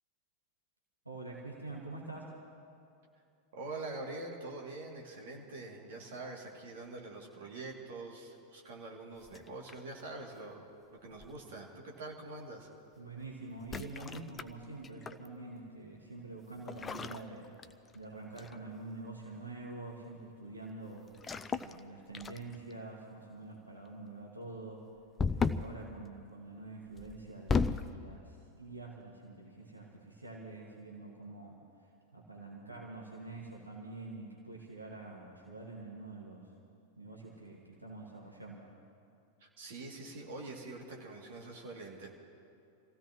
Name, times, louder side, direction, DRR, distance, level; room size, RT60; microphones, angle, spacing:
voice 1, 1.0-2.5 13.0-21.1 21.6-24.9 25.3-36.5 37.0-38.7, right 2 dB, 85° right, -3 dB, 1.9 m, -46 dB
voice 2, 3.5-10.6 11.0-12.7 39.4-42.1, right 2 dB, 55° right, -1 dB, 2.7 m, -45 dB
sound 1, 9.2-10.0 11.2-11.5 13.6-15.3 16.7-18.0 18.4-18.7 21.1-21.8 22.1-22.7 25.2-25.8 27.0-27.9, left 5 dB, 20° left, 0.5 m, -35 dB
27.5 x 16.0 x 3.1 m, 2.6 s
figure-of-eight pair, 90°, 0 cm